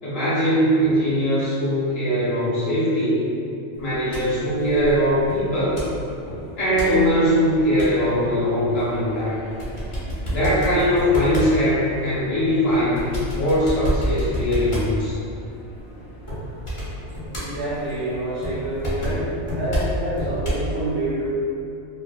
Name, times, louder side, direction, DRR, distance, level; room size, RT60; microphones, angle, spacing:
voice 1, 0.0-3.2 3.8-5.8 6.6-9.4 10.3-13.1 13.3-15.2, equal, 60° left, -9 dB, 1.1 m, -21 dB
sound 1, 3.7-20.7, equal, 35° left, 0.5 m, -31 dB
voice 2, 17.4-19.3 19.6-21.3, right 1 dB, 75° right, -8 dB, 1.1 m, -27 dB
2.8 x 2.1 x 2.4 m, 2.6 s
omnidirectional pair, 1.2 m